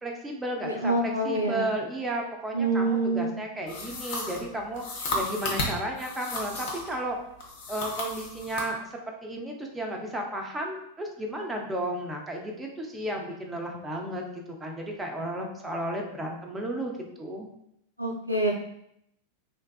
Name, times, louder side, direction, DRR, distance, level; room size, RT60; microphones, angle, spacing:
voice 1, 0.0-4.8 5.1-7.2 7.7-17.5, right 1 dB, 10° right, 0 dB, 0.4 m, -33 dB
voice 2, 0.6-1.7 2.5-3.3 18.0-18.5, right 2 dB, 90° right, -2 dB, 0.4 m, -26 dB
sound 1, 3.7-7.0 7.4-8.7, left 2 dB, 50° left, 0.6 m, -33 dB
2.5 x 2.3 x 2.3 m, 0.76 s
figure-of-eight pair, 90°, 0 cm